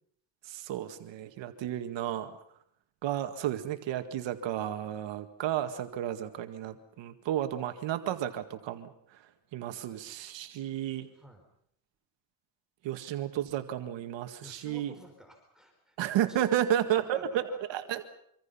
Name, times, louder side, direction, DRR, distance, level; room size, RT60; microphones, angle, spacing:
voice 1, 0.4-2.4 3.0-11.1 12.8-14.9 16.0-17.4 17.7-18.0, right 11 dB, 75° right, 7 dB, 2.1 m, -32 dB
voice 2, 11.1-11.5 14.4-16.0 16.3-17.6, equal, ahead, 2 dB, 5.1 m, -51 dB
26.0 x 26.0 x 5.7 m, 0.71 s
cardioid pair, 115°, 44 cm